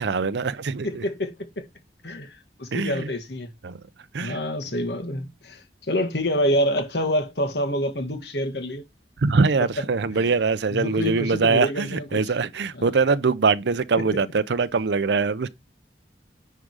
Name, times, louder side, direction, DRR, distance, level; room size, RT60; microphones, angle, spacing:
voice 1, 0.0-1.0 2.7-3.1 3.6-3.8 4.1-4.4 9.2-15.5, right 4 dB, 75° right, 0.6 m, -23 dB
voice 2, 0.8-1.7 2.0-3.5 4.2-8.8 9.6-9.8 10.2-10.3 10.7-12.2 12.7-12.9 14.0-14.1, equal, 70° left, 1.7 m, -27 dB
10.0 x 3.7 x 4.8 m
head